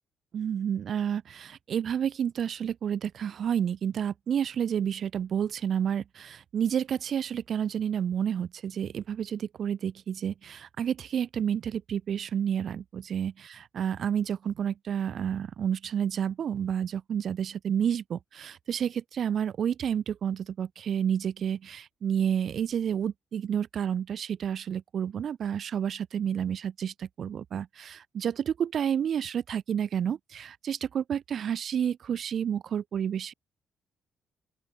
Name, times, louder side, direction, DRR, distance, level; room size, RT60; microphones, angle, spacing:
voice 1, 0.3-33.3, right 8 dB, 60° right, 0.6 m, -30 dB
open air
hypercardioid pair, 50°, 0 cm